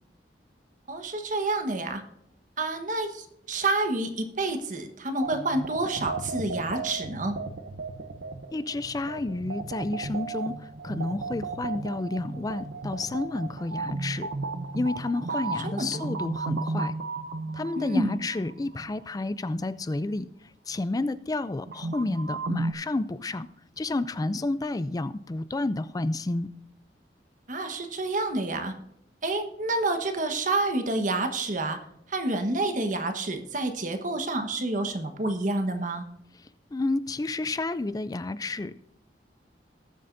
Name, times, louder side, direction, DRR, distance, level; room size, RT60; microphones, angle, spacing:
voice 1, 0.9-2.0 2.6-7.3 15.6-16.1 17.8-18.2 27.5-28.7 29.2-31.8 32.1-36.0, right 2 dB, 50° right, 7 dB, 1.2 m, -28 dB
sound 1, 5.2-18.9 21.7-22.7, right 3 dB, 80° right, 0.8 m, -34 dB
voice 2, 8.5-14.3 14.7-16.9 17.5-20.3 20.7-23.5 23.8-26.5 36.7-38.8, left 2 dB, 20° left, 14 dB, 0.4 m, -30 dB
19.5 x 7.6 x 2.6 m, 0.82 s
head